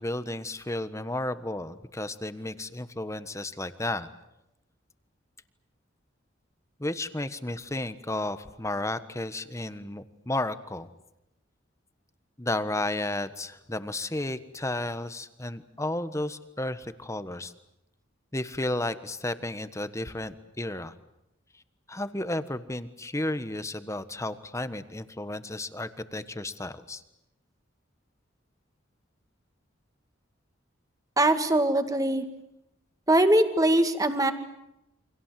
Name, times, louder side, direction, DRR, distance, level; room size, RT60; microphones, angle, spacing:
voice 1, 0.0-4.1 6.8-10.9 12.4-17.5 18.3-20.9 21.9-27.0, left 1 dB, 15° left, 12 dB, 1.3 m, -33 dB
voice 2, 31.2-32.2 33.1-34.3, right 1 dB, 20° right, 8 dB, 2.1 m, -22 dB
29.5 x 25.5 x 7.6 m, 0.86 s
head